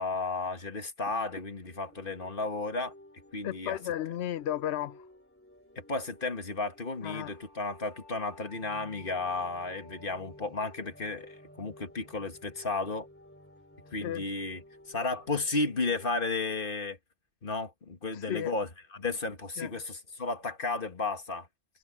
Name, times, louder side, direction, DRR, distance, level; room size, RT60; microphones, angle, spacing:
voice 1, 0.0-2.9 3.3-3.8 5.8-13.1 13.9-14.6 14.9-17.0 17.4-21.5, left 3 dB, 55° left, 2.0 m, -33 dB
sound 1, 1.7-16.1, left 1 dB, 10° left, 4.0 m, -55 dB
voice 2, 3.4-5.0 7.0-7.3 14.0-14.2 18.1-18.5 19.6-19.7, left 12 dB, 80° left, 0.9 m, -34 dB
sound 2, 7.0-12.1, left 1 dB, 20° right, 7.5 m, -57 dB
omnidirectional pair, 1.1 m